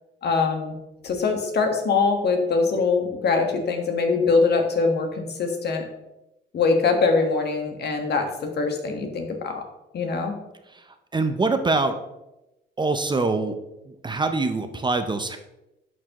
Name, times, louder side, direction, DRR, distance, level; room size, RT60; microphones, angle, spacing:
voice 1, 0.2-0.7 1.0-5.9 6.5-9.6 9.9-10.4, left 4 dB, 55° left, 3 dB, 1.5 m, -23 dB
voice 2, 10.7-12.0 12.8-13.6 13.9-15.4, right 3 dB, 25° right, 7 dB, 0.6 m, -24 dB
10.5 x 4.6 x 3.0 m, 0.93 s
cardioid pair, 90°, 20 cm